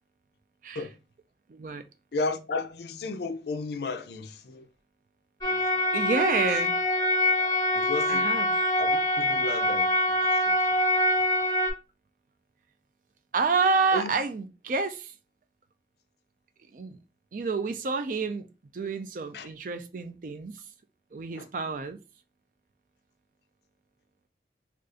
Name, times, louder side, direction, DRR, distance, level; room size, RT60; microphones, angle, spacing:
voice 1, 1.5-1.8 5.9-6.8 8.1-8.6 13.3-15.1 16.7-17.0 17.3-18.5 18.7-20.6 21.1-22.0, right 4 dB, 45° right, 0.4 m, -29 dB
voice 2, 2.1-4.6 5.4-5.8 7.7-8.3 8.8-10.8 13.9-14.1 19.3-19.5 21.4-21.5, left 3 dB, 65° left, 0.4 m, -34 dB
sound 1, 5.4-11.7, left 1 dB, 20° left, 0.6 m, -25 dB
2.5 x 2.4 x 3.7 m
head